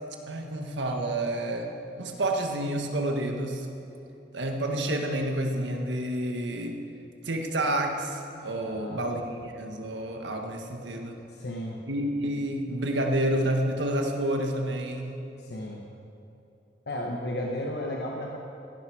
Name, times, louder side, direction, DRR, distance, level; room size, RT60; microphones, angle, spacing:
voice 1, 0.3-1.7 2.0-3.7 4.3-6.8 7.2-11.2 11.9-15.2, right 1 dB, 90° right, 3 dB, 1.6 m, -29 dB
voice 2, 8.6-9.0 11.3-11.8 15.4-15.8 16.9-18.4, left 1 dB, 65° left, -1 dB, 1.2 m, -34 dB
15.5 x 12.0 x 4.8 m, 2.9 s
head